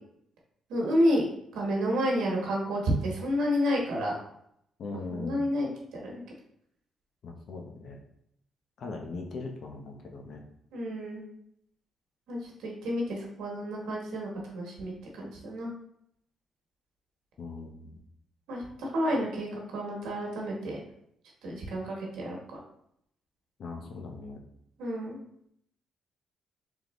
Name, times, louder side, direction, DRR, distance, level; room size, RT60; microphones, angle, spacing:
voice 1, 0.7-1.2 1.5-4.1 5.1-6.2 10.7-11.2 12.3-15.7 18.5-20.8 21.4-22.6 24.8-25.2, equal, 85° right, -2 dB, 1.1 m, -30 dB
voice 2, 4.8-5.5 7.2-8.0 8.8-10.4 17.4-18.0 23.6-24.4, left 3 dB, 60° left, 2 dB, 0.8 m, -40 dB
3.7 x 3.5 x 3.1 m, 0.73 s
cardioid pair, 90°, 0 cm